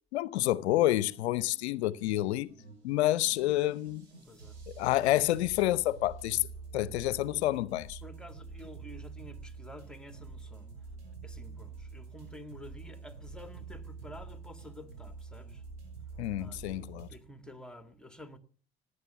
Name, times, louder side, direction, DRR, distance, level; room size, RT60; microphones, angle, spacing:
voice 1, 0.1-2.5 2.8-4.0 4.7-6.5 6.7-8.0 16.2-17.1, left 15 dB, 80° left, 0.6 m, -28 dB
sound 1, 0.6-17.2, right 4 dB, 90° right, 6.2 m, -47 dB
voice 2, 4.2-4.6 8.0-10.9 11.2-15.6 16.4-18.4, equal, ahead, 2.1 m, -50 dB
17.5 x 9.8 x 7.1 m
hypercardioid pair, 65°, 33 cm